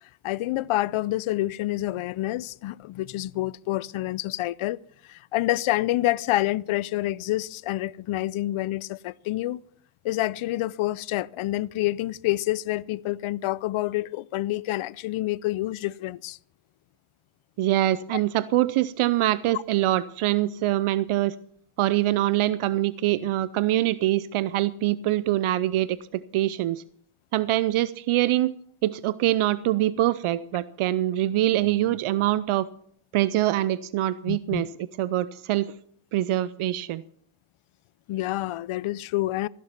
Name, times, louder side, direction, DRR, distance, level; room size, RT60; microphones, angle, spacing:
voice 1, 0.2-4.8 5.1-9.6 10.0-16.4 18.1-18.2 19.5-19.6 34.3-34.6 38.1-39.5, left 16 dB, 80° left, 0.6 m, -28 dB
voice 2, 17.6-21.3 21.8-26.8 27.3-28.5 28.8-32.7 33.1-34.7 35.0-35.7 36.1-37.0, right 14 dB, 80° right, 0.6 m, -24 dB
15.0 x 11.0 x 5.8 m
cardioid pair, 100°, 49 cm